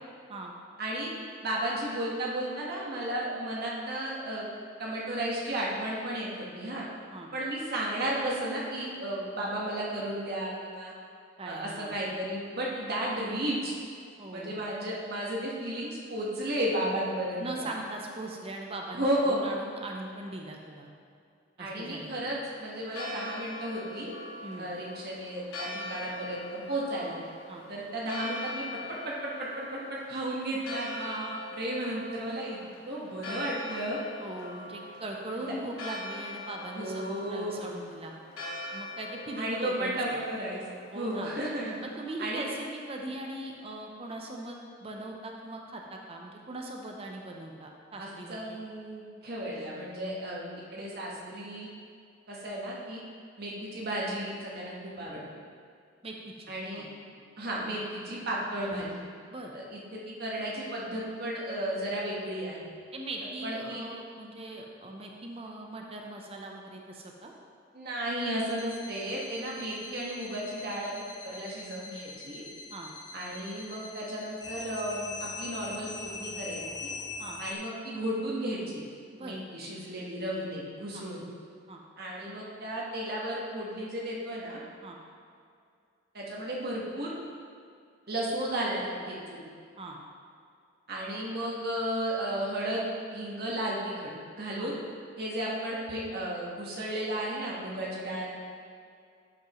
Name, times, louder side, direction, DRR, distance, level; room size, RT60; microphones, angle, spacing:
voice 1, 0.8-1.1 1.4-4.5 4.8-6.9 7.3-10.9 11.4-13.7 14.3-17.6 19.0-19.4 21.6-24.1 24.6-27.1 27.7-28.7 29.0-32.6 32.9-34.0 35.3-35.5 36.8-37.7 39.4-40.6 40.9-41.8 42.2-42.4 48.0-51.7 52.3-53.0 53.4-55.2 56.5-56.8 57.4-58.9 59.5-62.6 63.4-63.9 67.7-72.5 73.1-76.9 77.4-78.8 79.2-81.2 82.0-84.6 86.1-87.1 88.1-89.4 90.9-92.9 93.1-94.8 95.2-98.3, right 1 dB, 50° right, -4 dB, 1.6 m, -34 dB
voice 2, 11.4-12.0 14.2-14.6 17.4-20.9 21.6-22.1 24.4-24.7 27.5-27.6 33.9-38.1 38.7-40.2 40.9-41.3 41.8-48.6 56.0-56.5 56.7-56.9 59.3-59.5 62.9-67.3 72.7-72.9 77.2-77.4 79.1-79.3 80.9-81.0 81.7-81.8 84.8-85.0 89.8-90.0 94.6-94.7, right 2 dB, 30° right, 1 dB, 0.8 m, -40 dB
Church bell, 22.6-42.0, left 2 dB, 90° left, 1.5 m, -42 dB
sound 1, 68.5-77.5, left 4 dB, 20° left, 0.5 m, -42 dB
11.5 x 5.3 x 3.1 m, 2.3 s
head